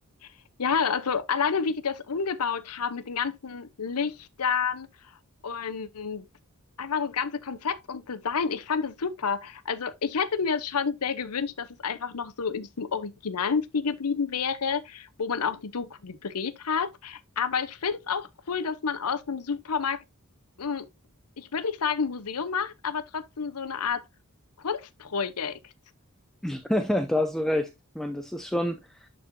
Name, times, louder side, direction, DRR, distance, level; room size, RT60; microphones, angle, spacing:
voice 1, 0.6-4.9 5.4-6.3 6.8-20.0 20.6-20.9 21.4-24.0 24.6-25.6, left 6 dB, 80° left, 0.8 m, -29 dB
voice 2, 26.4-29.1, left 1 dB, ahead, 0.6 m, -28 dB
11.5 x 4.2 x 2.7 m
head